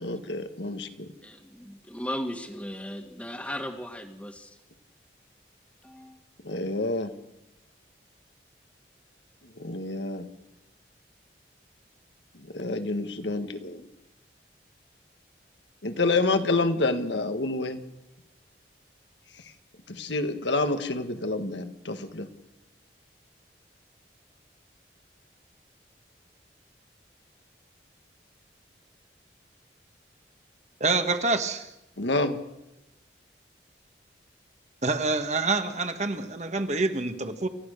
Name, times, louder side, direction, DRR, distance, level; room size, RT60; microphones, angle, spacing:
voice 1, 0.0-1.1 6.4-7.1 9.6-10.3 12.3-13.9 15.8-17.8 19.9-22.3 32.0-32.4, left 2 dB, 80° left, 8 dB, 1.7 m, -28 dB
voice 2, 1.2-4.6 5.8-6.2, equal, 5° left, 6 dB, 1.8 m, -36 dB
voice 3, 30.8-31.7 34.8-37.5, right 3 dB, 40° right, 8 dB, 1.5 m, -27 dB
29.0 x 14.5 x 6.7 m, 0.89 s
head